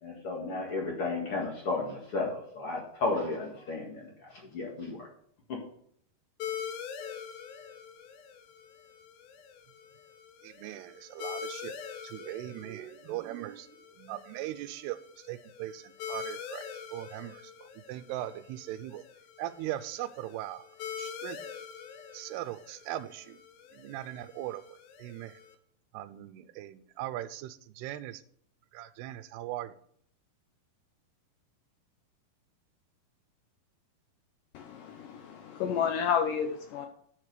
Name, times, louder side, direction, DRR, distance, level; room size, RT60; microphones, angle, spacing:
voice 1, 0.0-5.1 5.5-5.6, left 3 dB, 50° left, -1 dB, 1.9 m, -33 dB
sound 1, 6.4-25.5, left 8 dB, 75° left, 2.5 m, -44 dB
voice 2, 10.4-11.7 12.0-13.7 14.0-15.0 15.2-19.0 19.4-20.7 21.0-21.4 22.1-23.4 23.7-25.4 25.9-28.2 28.7-29.7, right 14 dB, 85° right, 14 dB, 2.5 m, -39 dB
voice 3, 34.5-36.9, left 7 dB, 90° left, 4 dB, 1.8 m, -31 dB
7.8 x 6.7 x 6.7 m, 0.64 s
omnidirectional pair, 4.7 m